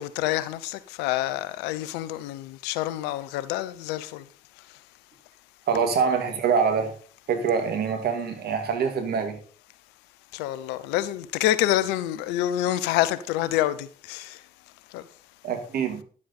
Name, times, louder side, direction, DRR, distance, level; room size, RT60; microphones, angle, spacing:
voice 1, 0.0-4.2 10.3-14.4 14.9-15.0, left 14 dB, 85° left, 0.7 m, -27 dB
voice 2, 5.7-6.9 7.3-9.4 15.4-16.0, right 6 dB, 70° right, 2.2 m, -25 dB
11.0 x 7.5 x 4.2 m
hypercardioid pair, 45°, 17 cm